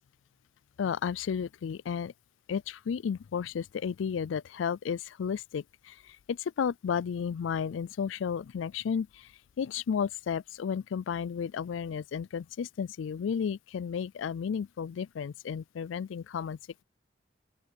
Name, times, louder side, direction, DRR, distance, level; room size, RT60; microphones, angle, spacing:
voice 1, 0.8-2.1 2.5-5.9 6.3-9.1 9.6-16.8, left 7 dB, 85° left, 0.3 m, -33 dB
open air
head